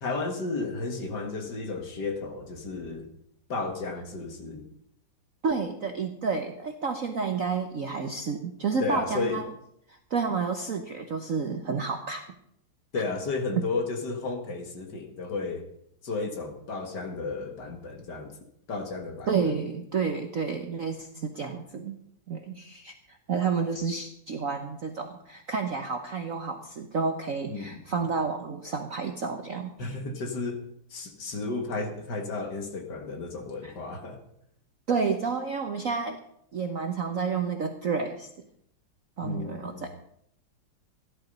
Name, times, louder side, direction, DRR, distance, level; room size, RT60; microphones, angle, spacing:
voice 1, 0.0-3.1 3.5-4.7 8.8-9.4 12.9-15.6 16.0-18.3 18.7-19.5 27.5-28.0 29.8-30.6 30.9-34.2 39.2-39.9, left 3 dB, 55° left, 5 dB, 2.2 m, -33 dB
voice 2, 5.4-9.5 9.9-12.2 19.3-22.0 22.3-30.0 33.6-33.7 34.9-36.2 36.5-38.3 39.2-39.9, right 5 dB, 50° right, 5 dB, 1.1 m, -30 dB
14.5 x 11.0 x 5.3 m, 0.72 s
omnidirectional pair, 2.3 m